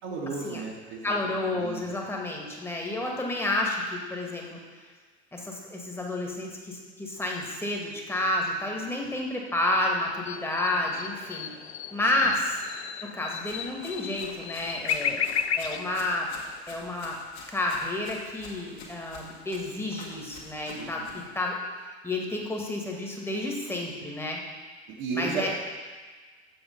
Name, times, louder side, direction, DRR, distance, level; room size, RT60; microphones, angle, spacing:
voice 1, 0.0-1.1 1.4-2.0 12.2-12.3 20.7-21.2 24.9-25.6, right 4 dB, 50° right, -5 dB, 1.6 m, -35 dB
voice 2, 1.0-4.6 5.3-11.5 11.9-12.6 13.0-16.3 16.7-17.2 17.5-24.4 25.1-25.6, left 1 dB, 5° left, -1 dB, 1.7 m, -30 dB
sound 1, 10.3-16.6, left 8 dB, 75° left, 0.5 m, -34 dB
Run, 13.4-21.3, left 4 dB, 50° left, 2.0 m, -47 dB
7.4 x 7.0 x 5.4 m, 1.4 s
figure-of-eight pair, 75°, 33 cm